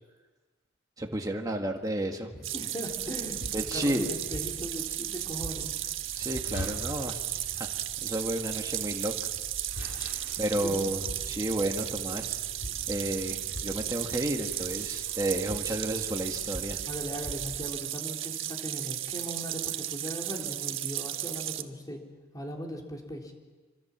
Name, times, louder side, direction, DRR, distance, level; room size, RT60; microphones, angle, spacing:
voice 1, 1.0-2.5 3.5-4.1 6.2-7.2 7.6-7.7 8.0-9.1 10.4-12.4 12.9-16.8, right 1 dB, 20° right, 2 dB, 1.8 m, -32 dB
sound 1, 2.4-21.6, right 13 dB, 80° right, 1.4 m, -35 dB
voice 2, 2.5-5.7 10.5-10.8 16.9-22.0 22.3-23.3, equal, 20° left, 0 dB, 3.9 m, -39 dB
sound 2, 2.9-17.8, left 1 dB, 80° left, 3.8 m, -44 dB
26.5 x 25.5 x 7.4 m, 1.3 s
head